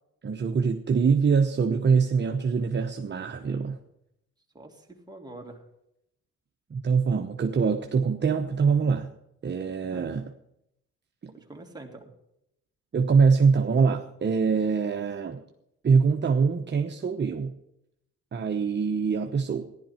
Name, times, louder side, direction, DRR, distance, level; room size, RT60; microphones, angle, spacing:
voice 1, 0.2-3.8 6.7-9.1 9.4-10.2 11.2-11.3 12.9-15.4 15.8-17.6 18.3-19.7, right 5 dB, 35° right, 4 dB, 1.0 m, -24 dB
voice 2, 4.5-5.6 9.9-10.1 11.3-12.0, right 2 dB, 15° right, 1 dB, 2.9 m, -44 dB
15.0 x 11.5 x 4.4 m, 0.80 s
cardioid pair, 90°, 30 cm